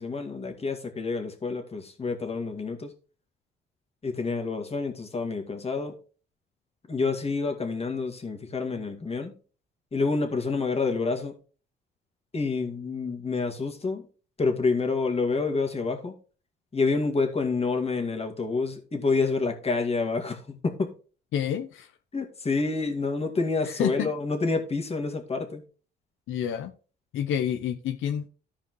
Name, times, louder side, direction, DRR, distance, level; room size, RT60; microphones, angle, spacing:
voice 1, 0.0-2.9 4.0-6.0 6.9-9.3 9.9-11.4 12.3-14.1 14.4-16.1 16.7-20.9 22.1-25.6, left 4 dB, 30° left, 2.1 m, -28 dB
voice 2, 21.3-21.9 23.7-24.1 26.3-26.7 27.1-28.3, left 9 dB, 80° left, 0.6 m, -28 dB
14.0 x 4.9 x 3.1 m
cardioid pair, 90°, 20 cm